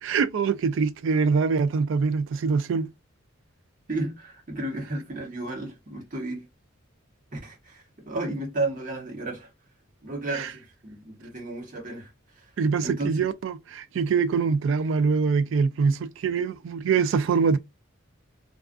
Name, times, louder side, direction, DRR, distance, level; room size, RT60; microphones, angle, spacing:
voice 1, 0.0-2.9 10.3-10.5 12.6-17.6, right 5 dB, 65° right, 0.3 m, -24 dB
voice 2, 3.9-6.5 7.3-9.5 10.0-12.5 12.8-13.1, right 2 dB, 40° right, 1.1 m, -33 dB
2.4 x 2.3 x 2.3 m
head